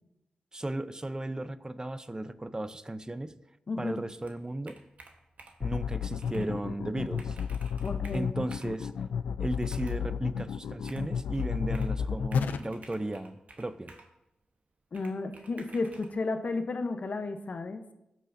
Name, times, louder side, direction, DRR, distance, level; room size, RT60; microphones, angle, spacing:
voice 1, 0.5-3.3 3.8-4.8 5.6-7.4 8.1-8.9 9.4-13.9, right 1 dB, 25° right, 13 dB, 0.6 m, -35 dB
voice 2, 3.7-4.0 7.8-8.3 14.9-17.8, left 3 dB, 60° left, 7 dB, 0.8 m, -33 dB
Computer keyboard, 4.2-5.7 6.2-6.5 6.9-7.0 7.2-8.8 9.6-10.1 10.9-12.0 12.3-14.1 14.9-16.1, right 3 dB, 60° right, 1.2 m, -53 dB
sound 1, 5.6-12.6, left 7 dB, 90° left, 0.3 m, -32 dB
15.0 x 6.4 x 2.7 m, 0.91 s
cardioid pair, 40°, 3 cm